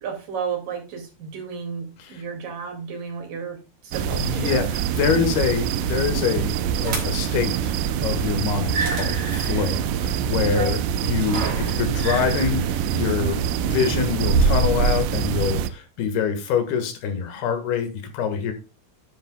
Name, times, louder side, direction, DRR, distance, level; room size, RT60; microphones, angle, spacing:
voice 1, 0.0-4.6 10.5-10.7 11.4-11.9, right 6 dB, 60° right, 3 dB, 3.9 m, -33 dB
sound 1, 3.9-15.7, right 9 dB, 80° right, 2.0 m, -25 dB
voice 2, 4.0-6.5 6.8-7.7 8.0-18.5, left 6 dB, 80° left, 7 dB, 3.6 m, -25 dB
sound 2, 6.8-7.4 8.6-15.2, right 3 dB, 40° right, 3.2 m, -27 dB
10.0 x 9.8 x 2.3 m, 0.29 s
omnidirectional pair, 4.5 m